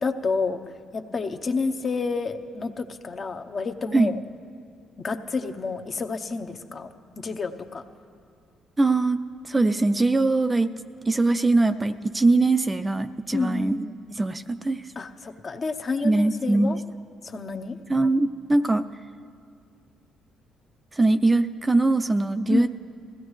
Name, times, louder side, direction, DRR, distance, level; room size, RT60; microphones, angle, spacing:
voice 1, 0.0-4.2 5.0-6.9 7.2-7.8 13.3-13.9 15.0-16.8 17.2-17.8 22.5-22.7, left 4 dB, 45° left, 7 dB, 0.8 m, -29 dB
voice 2, 8.8-10.7 11.1-14.9 16.0-16.8 17.9-18.8 20.9-22.7, right 2 dB, 20° right, 9 dB, 0.4 m, -22 dB
20.5 x 16.0 x 3.2 m, 2.3 s
cardioid pair, 80°, 0 cm